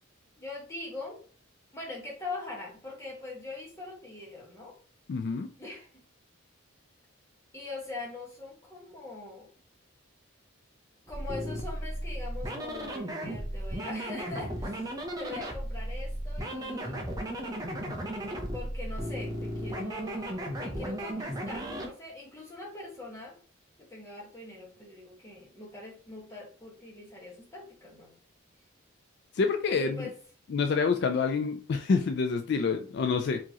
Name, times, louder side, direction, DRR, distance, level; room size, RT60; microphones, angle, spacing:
voice 1, 0.4-1.2 1.7-4.7 5.6-6.0 7.5-9.5 11.1-17.0 18.5-23.3 23.8-28.1 29.7-30.1, left 2 dB, 15° left, -3 dB, 1.3 m, -42 dB
voice 2, 5.1-5.5 29.3-30.0 30.5-33.4, left 5 dB, 55° left, 5 dB, 0.3 m, -27 dB
sound 1, 11.1-21.9, right 1 dB, 20° right, 0.6 m, -35 dB
4.5 x 2.9 x 2.9 m, 0.42 s
head